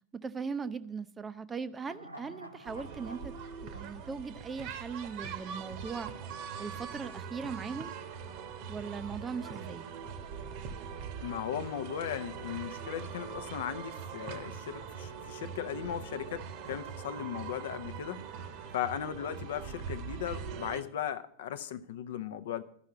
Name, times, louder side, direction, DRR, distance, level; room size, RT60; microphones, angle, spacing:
voice 1, 0.1-3.3 3.6-6.1 6.6-7.9 8.7-9.9, right 5 dB, 15° right, 0.4 m, -39 dB
sound 1, 1.8-5.2 5.5-5.6, right 1 dB, 85° right, 0.8 m, -51 dB
sound 2, 2.6-20.8, right 7 dB, 45° right, 1.0 m, -42 dB
voice 2, 11.2-18.2 18.7-22.6, left 10 dB, 55° left, 0.6 m, -37 dB
12.5 x 5.6 x 8.0 m
figure-of-eight pair, 90°, 0 cm